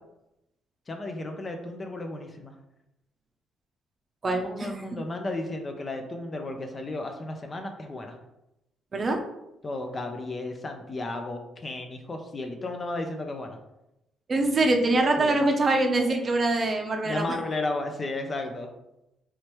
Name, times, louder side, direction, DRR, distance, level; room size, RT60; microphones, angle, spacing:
voice 1, 0.9-2.6 4.4-8.2 9.6-13.6 15.2-15.4 17.0-18.7, left 2 dB, 30° left, 4 dB, 0.5 m, -34 dB
voice 2, 4.2-4.8 8.9-9.2 14.3-17.3, right 2 dB, 35° right, 3 dB, 0.6 m, -24 dB
4.8 x 3.1 x 3.0 m, 0.90 s
cardioid pair, 115°, 0 cm